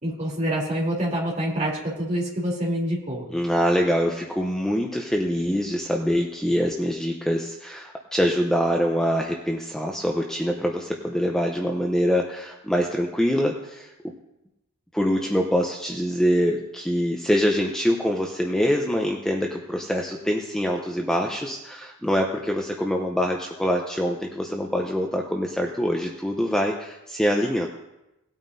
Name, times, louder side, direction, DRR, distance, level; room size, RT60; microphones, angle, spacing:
voice 1, 0.0-3.3, right 1 dB, 35° right, -3 dB, 3.2 m, -26 dB
voice 2, 3.3-14.1 14.9-27.7, equal, 5° left, 0 dB, 0.6 m, -24 dB
18.5 x 9.0 x 2.7 m, 0.94 s
head